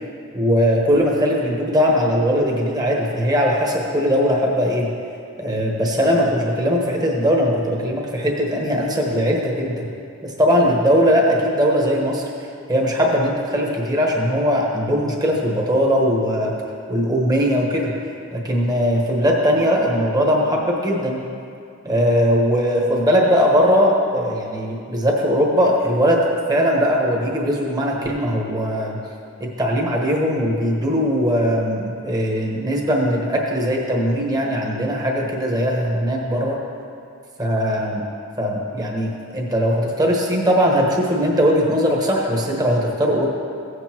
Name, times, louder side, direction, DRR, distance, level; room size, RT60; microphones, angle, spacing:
voice 1, 0.3-4.9 5.4-9.8 10.2-12.3 12.7-16.5 16.9-17.9 18.3-21.2 21.8-26.2 26.5-29.0 29.6-36.6 37.4-38.0 38.4-43.3, equal, 20° right, -2 dB, 1.3 m, -19 dB
16.5 x 8.0 x 3.0 m, 2.4 s
head